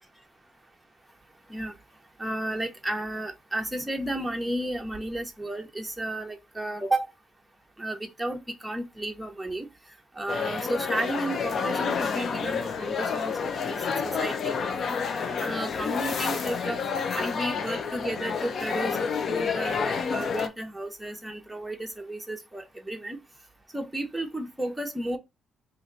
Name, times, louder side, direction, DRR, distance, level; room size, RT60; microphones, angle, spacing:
voice 1, 2.2-7.1 7.8-9.7 10.2-13.8 14.0-14.6 15.4-16.8 17.1-23.2 23.7-25.2, right 1 dB, 10° right, 0.8 m, -32 dB
sound 1, 10.3-20.5, left 6 dB, 55° left, 0.6 m, -29 dB
2.8 x 2.6 x 3.8 m
cardioid pair, 75°, 0 cm